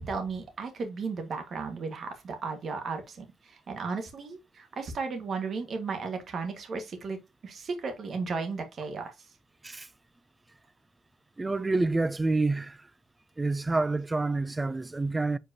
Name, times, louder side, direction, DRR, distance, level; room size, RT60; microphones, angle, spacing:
voice 1, 0.0-9.1, right 4 dB, 50° right, 1.8 m, -35 dB
voice 2, 11.4-12.8 13.4-15.4, right 3 dB, 15° right, 0.4 m, -28 dB
7.9 x 4.8 x 2.9 m
cardioid pair, 120°, 0 cm